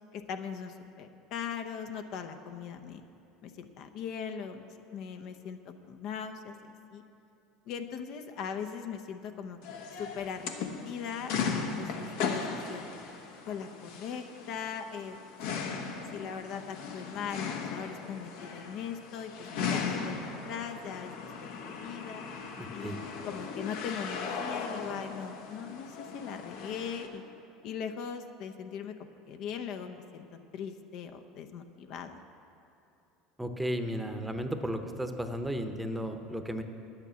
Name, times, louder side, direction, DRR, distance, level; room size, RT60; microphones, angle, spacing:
voice 1, 0.1-3.0 3.4-4.6 4.9-7.0 7.7-12.4 12.7-12.9 13.5-15.2 15.5-19.3 19.6-20.2 20.4-21.1 21.6-22.2 22.7-23.0 23.3-27.2 27.6-32.2, left 7 dB, 60° left, 7 dB, 0.7 m, -40 dB
sound 1, 9.6-27.1, left 5 dB, 75° left, 1.1 m, -38 dB
voice 2, 22.6-23.0 33.4-36.6, equal, 5° right, 6 dB, 0.9 m, -34 dB
10.0 x 8.9 x 7.0 m, 2.8 s
supercardioid pair, 100°, 0 cm